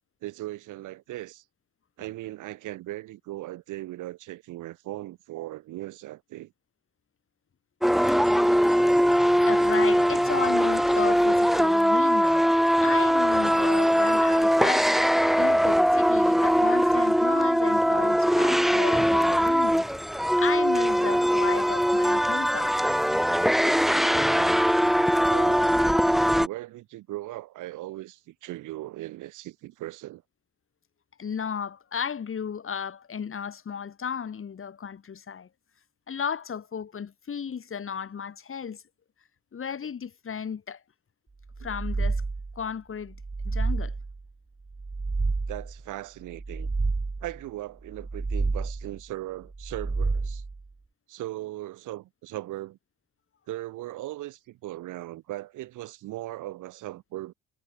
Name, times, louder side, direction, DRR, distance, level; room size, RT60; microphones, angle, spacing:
voice 1, 0.2-1.4 2.0-6.5 10.3-10.4 25.3-30.2 41.6-41.7 45.5-46.7 47.2-50.4 51.1-52.8 53.5-57.3, right 16 dB, 90° right, 2.5 m, -38 dB
sound 1, 7.8-26.5, equal, ahead, 2.3 m, -21 dB
voice 2, 9.4-12.5 12.8-19.9 20.4-22.7 26.1-26.2 31.2-35.5 36.1-38.8 39.5-40.8 41.6-42.2 42.5-43.2 43.4-43.9, left 7 dB, 45° left, 3.1 m, -34 dB
sound 2, 41.5-42.6 43.1-44.2 44.7-45.8 46.3-47.4 47.9-49.0 49.5-50.6, right 3 dB, 25° right, 5.4 m, -29 dB
cardioid pair, 90°, 30 cm